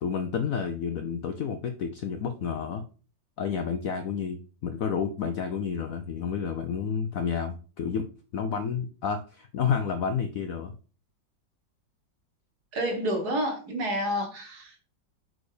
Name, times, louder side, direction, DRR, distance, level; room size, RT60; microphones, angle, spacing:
voice 1, 0.0-2.8 3.4-8.0 8.3-10.7, left 6 dB, 70° left, 7 dB, 0.8 m, -30 dB
voice 2, 12.7-14.9, equal, 60° right, 3 dB, 1.8 m, -29 dB
4.6 x 4.2 x 4.9 m, 0.36 s
omnidirectional pair, 2.0 m